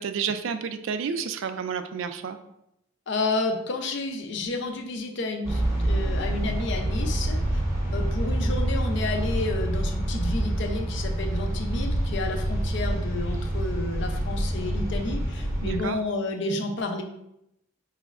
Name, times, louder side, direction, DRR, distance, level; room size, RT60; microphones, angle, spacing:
voice 1, 0.0-2.4 15.6-16.0, right 6 dB, 65° right, 10 dB, 0.3 m, -30 dB
voice 2, 3.1-7.6 7.9-17.0, left 2 dB, 55° left, 4 dB, 0.4 m, -31 dB
sound 1, 5.4-15.8, right 1 dB, 15° right, 0.6 m, -27 dB
4.7 x 3.0 x 2.4 m, 0.82 s
head